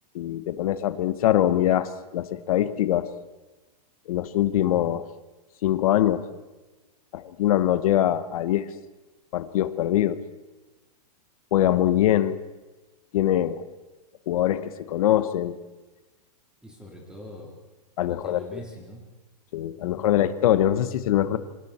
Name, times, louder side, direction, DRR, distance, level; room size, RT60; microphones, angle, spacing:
voice 1, 0.1-3.1 4.1-5.1 5.6-6.3 7.1-8.7 9.3-10.2 11.5-12.4 13.1-13.6 14.3-15.6 18.0-18.4 19.5-21.4, left 12 dB, 55° left, 13 dB, 1.3 m, -23 dB
voice 2, 16.6-17.5 18.1-19.0 19.8-20.1, equal, 5° right, -1 dB, 3.7 m, -43 dB
27.0 x 26.0 x 4.4 m, 1.1 s
hypercardioid pair, 155°, 21 cm